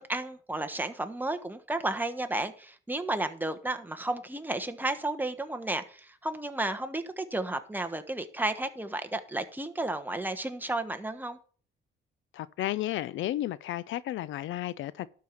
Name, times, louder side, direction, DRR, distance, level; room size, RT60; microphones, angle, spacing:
voice 1, 0.0-11.4, right 2 dB, 10° right, 1.2 m, -32 dB
voice 2, 12.3-15.1, left 14 dB, 80° left, 0.5 m, -33 dB
12.0 x 4.7 x 7.1 m
cardioid pair, 90°, 20 cm